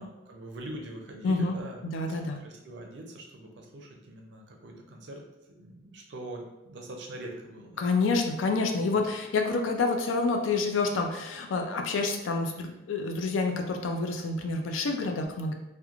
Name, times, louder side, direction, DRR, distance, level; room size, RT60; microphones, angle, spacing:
voice 1, 0.0-5.2 5.5-7.8 8.7-9.0, right 1 dB, 65° right, 1 dB, 0.5 m, -43 dB
voice 2, 1.2-1.6 1.8-2.4 7.8-15.5, left 3 dB, 85° left, 4 dB, 0.4 m, -28 dB
2.9 x 2.1 x 2.3 m, 0.97 s
head